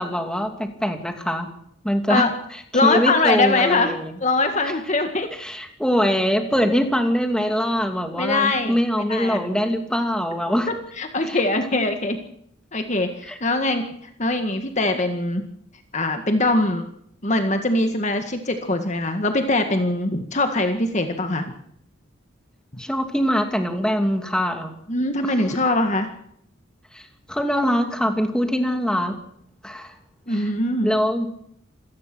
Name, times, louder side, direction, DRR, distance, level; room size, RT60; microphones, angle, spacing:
voice 1, 0.0-1.5 1.8-2.3 2.8-4.1 4.6-4.7 5.4-10.7 11.3-11.4 13.3-13.4 22.8-24.7 25.2-25.3 26.9-27.0 27.3-29.2 29.6-29.9 30.3-30.5 30.8-31.3, equal, 5° left, 5 dB, 2.6 m, -23 dB
voice 2, 2.7-3.9 4.2-5.3 8.2-9.5 10.9-12.2 12.7-13.8 14.2-15.4 15.9-16.8 17.2-21.4 24.9-26.1 30.3-30.9, left 2 dB, 35° left, 6 dB, 1.8 m, -22 dB
27.0 x 18.5 x 6.2 m, 0.71 s
head